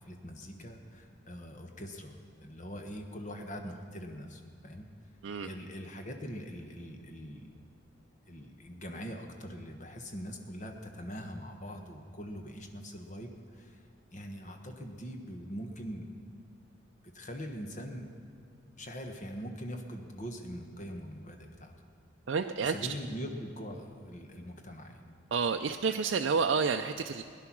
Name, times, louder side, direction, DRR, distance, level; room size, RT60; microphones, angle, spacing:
voice 1, 0.0-2.2 2.4-4.9 5.4-7.5 8.3-13.8 14.1-16.1 17.0-18.1 18.8-21.7 22.6-25.0, equal, 40° left, 4 dB, 1.3 m, -42 dB
voice 2, 22.3-22.7 25.3-27.2, right 5 dB, 70° right, 4 dB, 0.4 m, -29 dB
17.0 x 11.0 x 6.1 m, 2.3 s
head